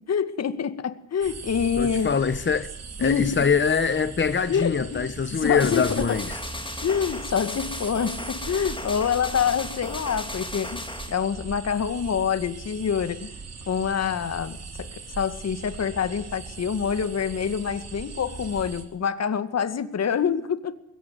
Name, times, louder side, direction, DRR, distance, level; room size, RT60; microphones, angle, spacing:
voice 1, 0.1-2.3 3.0-3.5 4.5-6.2 6.8-13.3 13.7-20.7, left 7 dB, 55° left, 2.2 m, -26 dB
sound 1, 1.2-18.8, right 4 dB, 55° right, 5.3 m, -39 dB
voice 2, 1.8-2.7 3.0-6.4, left 6 dB, 35° left, 1.5 m, -24 dB
sound 2, 5.6-11.1, left 2 dB, 15° left, 3.5 m, -36 dB
21.5 x 18.0 x 9.5 m
supercardioid pair, 60°, 31 cm